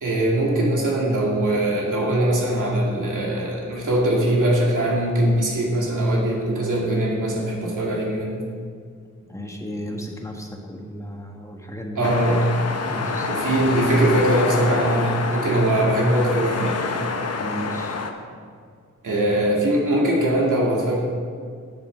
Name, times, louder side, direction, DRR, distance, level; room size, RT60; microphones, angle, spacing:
voice 1, 0.0-8.4 12.0-12.4 13.3-16.8 19.0-21.0, right 1 dB, 75° right, -3 dB, 2.3 m, -21 dB
voice 2, 9.3-12.1 12.8-13.3 17.4-18.0 19.1-19.2, equal, 10° left, 1 dB, 1.4 m, -34 dB
sound 1, 12.0-18.1, left 4 dB, 50° left, 0.9 m, -27 dB
9.3 x 7.2 x 6.3 m, 2.1 s
wide cardioid pair, 95°, 31 cm